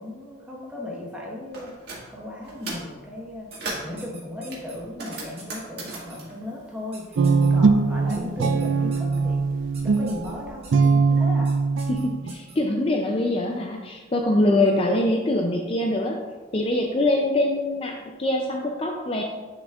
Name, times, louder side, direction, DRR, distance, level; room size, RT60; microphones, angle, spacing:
voice 1, 0.0-1.7 2.1-3.5 3.8-9.4 9.8-11.6, left 1 dB, 5° right, -4 dB, 1.2 m, -36 dB
sound 1, 1.5-2.0 2.4-2.9 3.3-4.0 4.5-7.4 7.7-8.8, right 2 dB, 55° right, 1.8 m, -37 dB
sound 2, 3.5-4.8 5.1-5.6 5.9-6.2 6.9-7.5 8.1-9.2 9.7-10.3 10.6-10.9 11.4-11.5 11.8-12.6, right 4 dB, 30° right, 1.3 m, -46 dB
Guitar, 7.2-12.3, right 4 dB, 70° right, 0.4 m, -21 dB
voice 2, 11.9-16.2 16.5-19.2, left 1 dB, 30° left, 1 dB, 0.4 m, -23 dB
9.8 x 5.1 x 2.4 m, 1.4 s
head